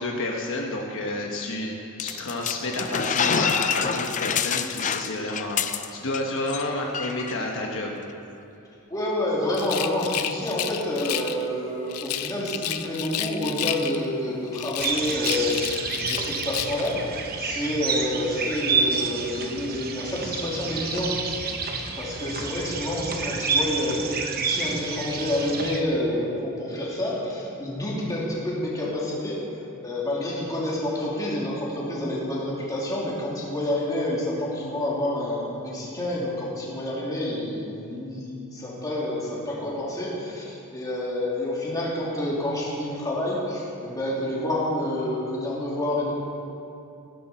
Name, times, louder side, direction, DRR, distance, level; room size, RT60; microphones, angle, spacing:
voice 1, 0.0-8.0, left 2 dB, 60° left, 0 dB, 1.2 m, -30 dB
sound 1, 2.0-6.2 6.5-6.6 6.9-7.3, left 7 dB, 35° left, 0.5 m, -26 dB
voice 2, 8.9-17.0 17.4-21.1 22.0-29.4 29.8-46.1, left 1 dB, 15° left, -6 dB, 2.8 m, -28 dB
Rattle, 9.5-11.4 11.9-14.2 14.5-17.0, left 11 dB, 80° left, 0.6 m, -31 dB
sound 2, 14.8-25.8, right 4 dB, 45° right, 1.0 m, -29 dB
15.5 x 12.5 x 4.3 m, 2.8 s
head